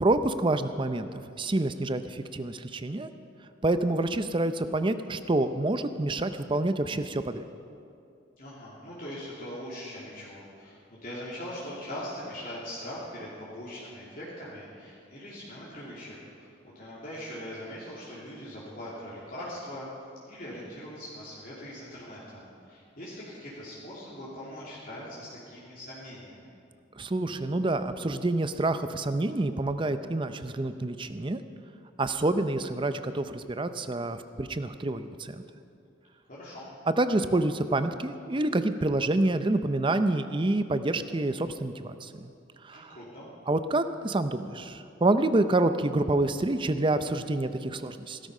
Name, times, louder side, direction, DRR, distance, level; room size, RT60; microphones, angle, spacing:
voice 1, 0.0-3.1 3.6-7.4 27.0-31.4 32.0-35.4 37.0-42.3 42.6-43.0 43.5-48.2, right 2 dB, 25° right, 10 dB, 0.6 m, -27 dB
voice 2, 8.4-19.9 20.2-26.5 36.3-36.7 42.7-43.3, equal, 45° left, -8 dB, 3.0 m, -41 dB
16.5 x 13.5 x 5.5 m, 2.5 s
head